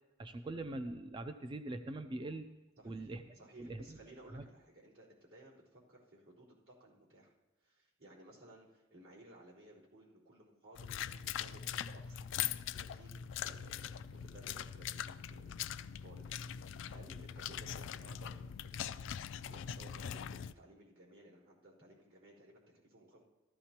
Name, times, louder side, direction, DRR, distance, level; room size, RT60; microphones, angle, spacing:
voice 1, 0.2-2.5 2.8-3.2 3.6-4.0 4.3-4.5, right 2 dB, 25° right, 9 dB, 0.4 m, -42 dB
voice 2, 2.8-7.3 7.6-23.2, right 1 dB, 85° right, -7 dB, 4.1 m, -59 dB
sound 1, 10.8-20.5, left 9 dB, 60° left, 0.3 m, -42 dB
14.5 x 13.5 x 2.9 m, 1.1 s
head